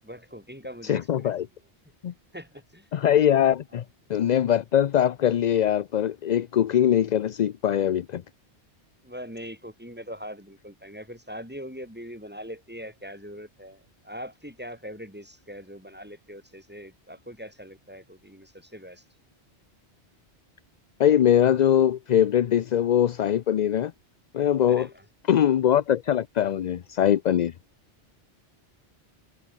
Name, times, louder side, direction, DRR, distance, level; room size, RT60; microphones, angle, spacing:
voice 1, 0.0-1.3 2.3-2.9 9.0-19.0 24.7-25.1, equal, 10° right, 7.1 m, -41 dB
voice 2, 0.9-1.5 2.0-2.1 2.9-3.8 4.1-8.2 21.0-23.9 24.3-24.9 25.3-27.5, left 10 dB, 55° left, 0.5 m, -22 dB
omnidirectional pair, 1.1 m